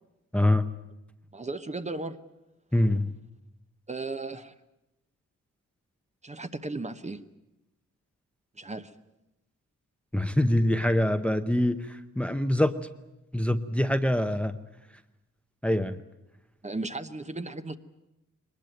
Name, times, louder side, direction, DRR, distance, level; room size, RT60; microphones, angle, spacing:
voice 1, 0.3-0.7 2.7-3.1 10.1-12.7 13.3-14.5 15.6-16.0, left 1 dB, 5° left, 10 dB, 0.8 m, -24 dB
voice 2, 1.3-2.2 3.9-4.5 6.2-7.2 8.6-8.9 16.6-17.8, right 3 dB, 25° right, 9 dB, 0.9 m, -35 dB
22.5 x 20.0 x 9.2 m, 0.94 s
wide cardioid pair, 120°, 30 cm